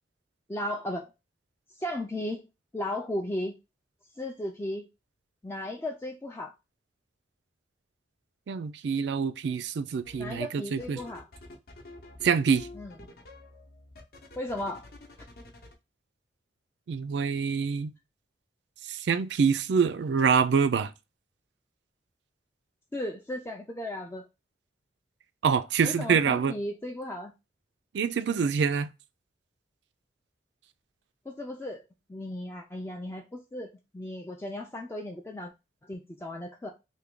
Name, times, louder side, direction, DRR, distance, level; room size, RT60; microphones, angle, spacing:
voice 1, 0.5-1.1 1.7-2.5 2.7-3.5 4.2-4.9 5.4-6.5 10.2-11.3 12.7-12.9 14.4-14.9 22.9-24.2 25.8-27.3 31.3-31.8 32.1-35.5 35.8-36.7, left 1 dB, 15° left, 0.3 m, -35 dB
voice 2, 8.5-11.0 12.2-12.7 16.9-17.9 18.9-20.9 25.4-26.5 27.9-28.9, right 6 dB, 65° right, 0.3 m, -26 dB
sound 1, 10.0-10.4 10.8-15.7, left 2 dB, 55° left, 0.7 m, -48 dB
3.4 x 2.2 x 3.6 m
head